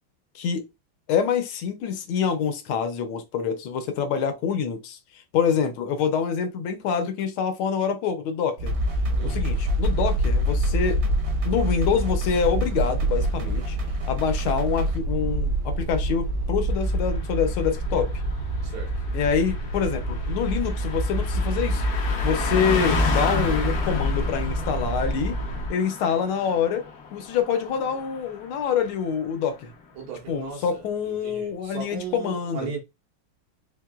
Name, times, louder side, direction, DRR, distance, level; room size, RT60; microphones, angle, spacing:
voice 1, 1.1-8.7 9.2-11.0 11.4-13.8 14.1-18.1 19.1-21.8 22.2-25.4 25.7-26.9 27.1-29.7 30.3-32.7, left 7 dB, 80° left, 1.6 m, -26 dB
sound 1, 8.6-25.7, right 1 dB, 65° right, 1.1 m, -26 dB
sound 2, 8.7-15.0, right 2 dB, 50° right, 0.8 m, -39 dB
voice 2, 9.2-9.5 18.6-18.9 30.0-32.8, right 7 dB, 90° right, 2.0 m, -37 dB
Car passing by, 16.8-28.7 29.0-29.3, left 5 dB, 65° left, 0.9 m, -33 dB
4.4 x 2.8 x 2.3 m
omnidirectional pair, 2.3 m